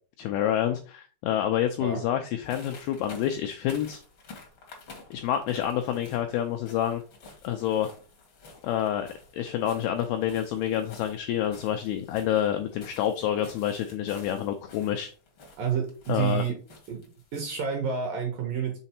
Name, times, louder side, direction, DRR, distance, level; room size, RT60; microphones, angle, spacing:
voice 1, 0.2-4.0 5.1-7.0 7.4-7.9 8.6-9.1 9.3-15.1 16.1-16.4, left 10 dB, 85° left, 6 dB, 2.2 m, -28 dB
sound 1, 2.4-17.5, left 3 dB, 65° left, 1.3 m, -50 dB
voice 2, 15.6-16.6 16.9-17.0 17.3-18.8, right 7 dB, 70° right, 2 dB, 2.2 m, -29 dB
6.7 x 3.9 x 4.3 m, 0.38 s
omnidirectional pair, 5.1 m